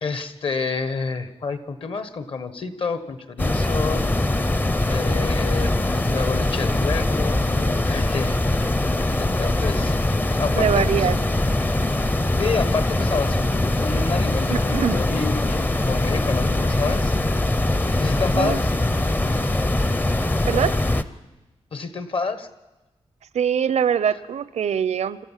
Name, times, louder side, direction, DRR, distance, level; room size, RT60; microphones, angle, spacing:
voice 1, 0.0-4.4 4.9-8.4 9.2-10.0 10.4-11.1 12.4-17.1 18.0-18.8 21.7-22.5, left 4 dB, 55° left, 12 dB, 1.3 m, -29 dB
sound 1, 3.4-21.0, left 1 dB, 15° left, 0.6 m, -22 dB
voice 2, 10.6-11.2 14.5-15.0 18.4-18.6 20.5-20.7 23.3-25.2, right 8 dB, 90° right, 17 dB, 0.7 m, -23 dB
27.0 x 13.5 x 7.4 m, 1.1 s
wide cardioid pair, 170°, 11 cm